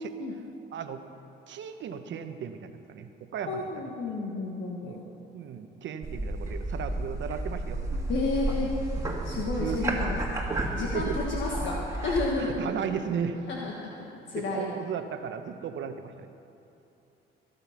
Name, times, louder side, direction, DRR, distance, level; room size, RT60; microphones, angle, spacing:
voice 1, 0.7-1.0 1.5-3.7 4.8-5.0 5.3-8.0 9.1-9.2 9.6-10.0 10.8-11.2 12.4-13.4 14.3-16.3, right 7 dB, 70° right, 8 dB, 1.0 m, -35 dB
voice 2, 3.5-5.0 8.1-8.7 9.2-10.2 10.5-12.7 13.5-14.7, left 3 dB, 70° left, -2 dB, 1.5 m, -32 dB
sound 1, 6.0-12.3, right 2 dB, 15° right, 1.9 m, -31 dB
20.5 x 6.9 x 5.8 m, 2.9 s
cardioid pair, 90°, 20 cm